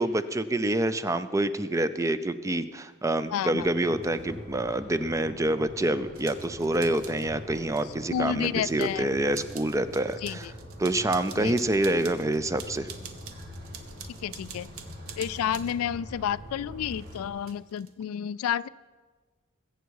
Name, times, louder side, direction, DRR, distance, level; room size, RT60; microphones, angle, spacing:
voice 1, 0.0-10.5 10.8-12.9, right 1 dB, 15° right, 13 dB, 0.4 m, -27 dB
voice 2, 3.3-3.7 8.1-9.1 10.2-10.5 11.4-11.5 14.2-14.7 15.2-18.7, left 9 dB, 85° left, 19 dB, 0.3 m, -30 dB
sound 1, 3.6-17.3, equal, 45° right, 2.5 m, -44 dB
sound 2, 6.1-7.3 7.7-8.9 9.3-15.8 17.0-17.9, right 7 dB, 85° right, 1.0 m, -47 dB
21.5 x 8.1 x 4.7 m, 1.4 s
head